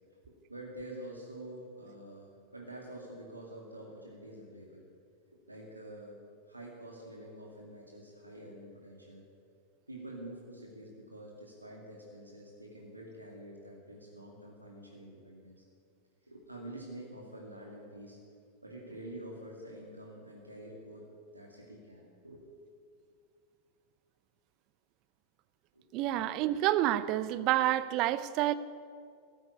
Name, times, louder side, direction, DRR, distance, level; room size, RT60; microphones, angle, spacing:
voice 1, 0.3-4.9 5.3-6.2 6.5-9.2 9.9-15.6 16.2-18.2 18.6-21.1 21.3-22.4 25.7-25.8, right 1 dB, 85° right, -1 dB, 2.2 m, -47 dB
voice 2, 25.9-28.5, right 14 dB, 40° right, 15 dB, 0.6 m, -28 dB
13.5 x 8.8 x 9.6 m, 2.3 s
figure-of-eight pair, 90°, 0 cm